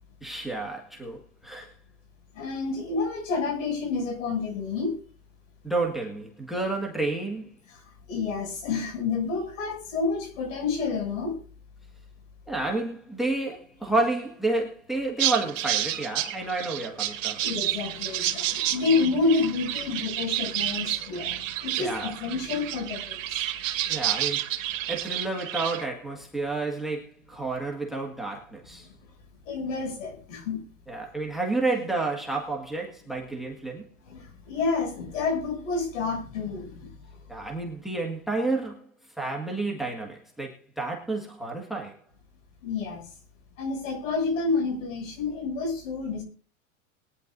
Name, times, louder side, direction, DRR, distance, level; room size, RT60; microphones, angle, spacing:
voice 1, 0.2-1.7 5.6-7.5 12.5-17.4 21.8-22.1 23.9-24.4 24.9-28.9 30.9-33.9 37.3-38.9 39.2-42.0, right 2 dB, ahead, 2 dB, 1.7 m, -30 dB
voice 2, 2.3-5.0 7.7-7.8 8.1-11.3 17.4-23.4 29.5-30.6 34.1-37.2 42.6-43.0 43.6-46.2, left 4 dB, 65° left, 4 dB, 6.9 m, -29 dB
sound 1, 15.2-25.8, right 13 dB, 65° right, 1.9 m, -30 dB
22.0 x 10.0 x 2.6 m, 0.38 s
supercardioid pair, 135°, 41 cm